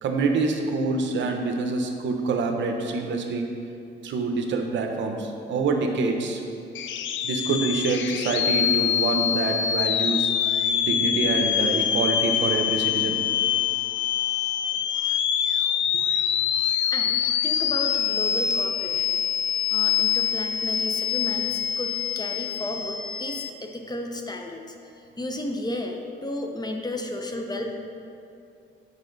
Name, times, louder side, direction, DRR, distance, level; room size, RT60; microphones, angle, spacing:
voice 1, 0.0-3.5 4.0-6.4 7.2-10.3 10.8-13.2 15.9-16.0, right 3 dB, 70° right, 3 dB, 0.9 m, -26 dB
sound 1, 6.7-23.5, left 9 dB, 70° left, 0.5 m, -25 dB
voice 2, 16.9-19.2 19.7-24.7 25.2-27.7, left 1 dB, 20° left, 3 dB, 0.8 m, -33 dB
8.2 x 5.6 x 4.0 m, 2.5 s
cardioid pair, 90°, 20 cm